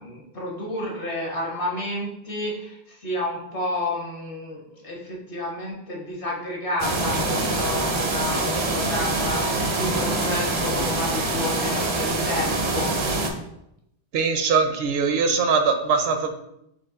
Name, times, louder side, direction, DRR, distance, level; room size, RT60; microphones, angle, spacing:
voice 1, 0.0-12.9, left 1 dB, 55° left, -2 dB, 1.3 m, -31 dB
sound 1, 6.8-13.3, right 2 dB, 40° right, 0.4 m, -25 dB
sound 2, 8.2-12.0, left 3 dB, 85° left, 1.0 m, -38 dB
voice 2, 14.1-16.3, right 5 dB, 70° right, 6 dB, 0.8 m, -21 dB
4.5 x 2.9 x 3.7 m, 0.80 s
omnidirectional pair, 1.1 m